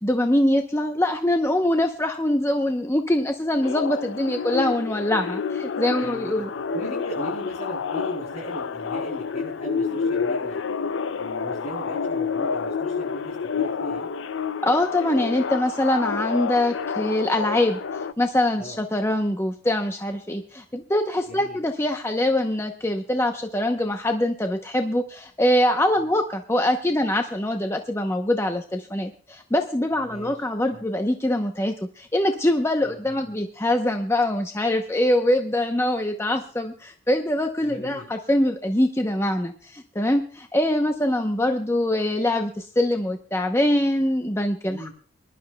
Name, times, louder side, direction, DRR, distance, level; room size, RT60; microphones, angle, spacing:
voice 1, 0.0-6.5 14.6-17.8 18.2-44.9, left 1 dB, 15° left, 5 dB, 0.7 m, -23 dB
sound 1, 3.6-18.1, left 5 dB, 80° left, 0.5 m, -29 dB
voice 2, 6.0-10.6 11.2-14.1 18.6-18.8 21.3-21.6 26.0-26.1 30.0-30.3 30.7-30.8 32.8-33.3 37.6-38.1 44.7-44.9, equal, 30° left, -7 dB, 7.6 m, -37 dB
23.5 x 12.0 x 2.2 m, 0.43 s
head